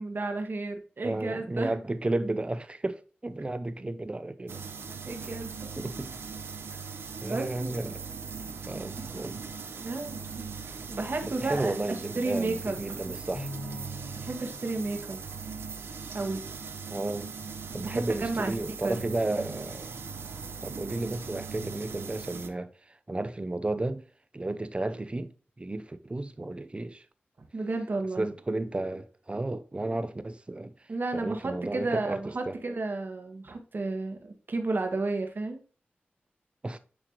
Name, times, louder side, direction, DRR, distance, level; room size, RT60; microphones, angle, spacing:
voice 1, 0.0-1.7 5.0-5.7 7.2-7.7 9.8-10.2 10.9-12.8 14.2-15.2 16.1-16.4 17.7-18.5 18.8-19.0 27.5-28.3 30.9-35.6, right 3 dB, 60° right, 1.4 m, -32 dB
voice 2, 1.0-4.6 5.8-6.1 7.2-8.0 8.7-9.4 11.2-13.5 16.9-17.3 17.7-19.9 20.6-22.7 23.1-24.0 24.3-25.3 25.6-27.1 28.2-30.7 31.1-32.5 36.6-36.8, right 2 dB, 30° right, 0.6 m, -33 dB
sound 1, 4.5-22.5, right 5 dB, 85° right, 0.7 m, -40 dB
Bowed string instrument, 13.3-16.0, left 1 dB, 60° left, 2.4 m, -43 dB
9.8 x 3.3 x 3.0 m
cardioid pair, 55°, 4 cm